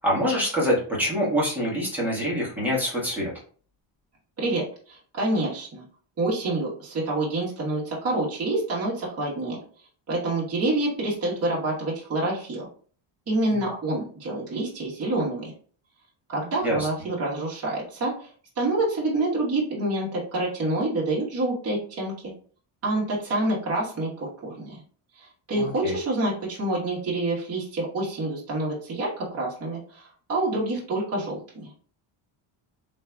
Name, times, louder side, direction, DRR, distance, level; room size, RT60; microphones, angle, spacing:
voice 1, 0.0-3.3 13.5-13.6 16.6-16.9 25.5-25.9, equal, 5° right, -6 dB, 1.4 m, -25 dB
voice 2, 4.4-5.8 6.2-9.6 10.1-12.7 13.3-15.5 16.3-18.3 18.6-22.3 22.8-24.8 25.2-31.7, right 2 dB, 30° right, -6 dB, 1.3 m, -27 dB
3.5 x 3.1 x 2.2 m, 0.43 s
cardioid pair, 140°, 50 cm